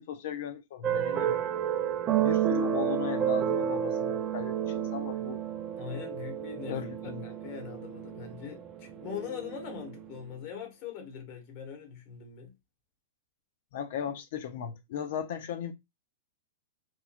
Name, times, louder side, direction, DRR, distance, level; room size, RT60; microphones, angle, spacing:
voice 1, 0.0-1.4 2.2-5.4 6.7-7.3 13.7-15.7, left 9 dB, 60° left, 0.4 m, -37 dB
sound 1, 0.8-10.0, right 9 dB, 25° right, 0.3 m, -31 dB
voice 2, 0.9-1.4 5.8-12.5, left 8 dB, 45° left, 1.1 m, -42 dB
3.0 x 2.2 x 2.4 m
hypercardioid pair, 145°, 0 cm